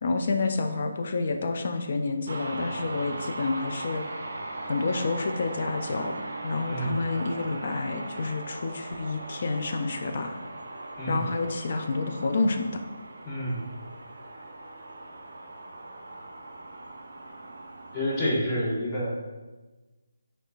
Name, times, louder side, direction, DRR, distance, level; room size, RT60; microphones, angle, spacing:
voice 1, 0.0-4.0 4.6-10.4 11.1-12.8, left 3 dB, 40° left, 5 dB, 0.3 m, -29 dB
sound 1, 2.3-18.2, right 2 dB, 50° right, 0.5 m, -39 dB
voice 2, 6.7-7.0 11.0-11.3 13.2-13.7 17.9-19.1, equal, 15° left, -5 dB, 0.8 m, -28 dB
4.2 x 3.2 x 2.5 m, 1.2 s
figure-of-eight pair, 150°, 0 cm